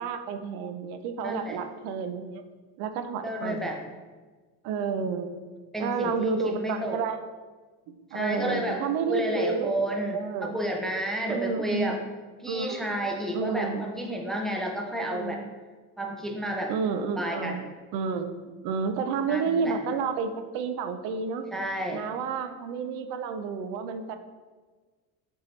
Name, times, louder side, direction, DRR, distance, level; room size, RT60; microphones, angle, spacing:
voice 1, 0.0-2.4 2.8-3.7 4.6-5.4 5.8-7.2 7.9-9.8 10.1-10.6 11.3-12.0 12.4-12.9 13.3-13.9 15.1-15.5 16.7-17.7 17.9-21.4 21.9-24.2, right 5 dB, 75° right, 8 dB, 0.7 m, -30 dB
voice 2, 1.2-1.6 3.2-3.8 5.7-7.0 8.1-8.8 9.1-12.0 12.4-15.4 16.0-16.7 17.2-17.6 19.3-19.8 21.5-22.0, equal, ahead, 1 dB, 0.5 m, -31 dB
8.0 x 4.6 x 3.2 m, 1.4 s
cardioid pair, 155°, 36 cm